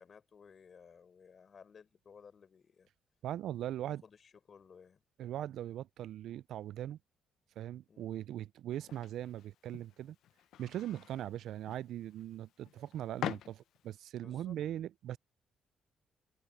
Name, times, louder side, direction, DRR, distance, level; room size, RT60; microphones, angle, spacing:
voice 1, 0.0-2.9 3.8-5.0 7.9-8.2 14.2-14.6, left 6 dB, 45° left, 5.8 m, -58 dB
voice 2, 3.2-4.0 5.2-7.0 7.6-10.2 10.6-15.2, right 12 dB, 75° right, 0.3 m, -40 dB
sound 1, 8.7-14.1, left 11 dB, 80° left, 0.6 m, -46 dB
cardioid pair, 90°, 0 cm